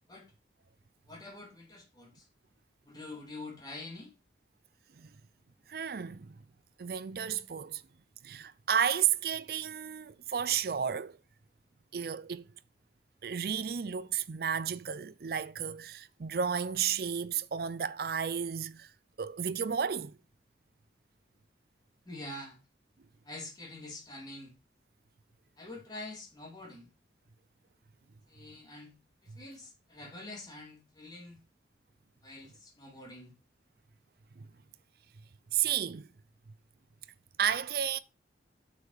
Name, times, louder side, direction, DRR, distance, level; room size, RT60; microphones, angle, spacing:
voice 1, 1.1-2.3 2.9-4.1 22.0-22.6 23.2-24.5 25.6-26.9 28.3-31.4 32.2-33.3, left 2 dB, 20° left, 3.1 m, -46 dB
voice 2, 5.7-6.4 6.8-7.8 8.2-11.2 11.9-12.5 13.2-18.9 19.2-20.2 34.4-34.5 35.5-36.1 37.4-38.0, right 8 dB, 55° right, 0.4 m, -32 dB
8.3 x 6.5 x 4.9 m
head